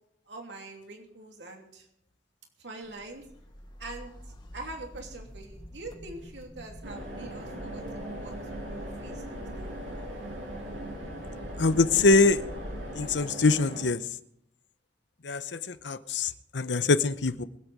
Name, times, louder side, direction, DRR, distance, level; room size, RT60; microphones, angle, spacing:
voice 1, 0.3-1.9 2.6-3.3 3.8-4.1 4.5-9.2 9.5-9.7, right 2 dB, 70° right, 3.0 m, -44 dB
sound 1, 2.8-13.1, equal, 25° left, 1.5 m, -44 dB
sound 2, 6.8-13.8, right 1 dB, 90° right, 7.2 m, -40 dB
voice 2, 11.6-12.4 13.0-14.0 15.2-17.4, left 3 dB, 75° left, 0.9 m, -24 dB
23.5 x 8.2 x 4.9 m
head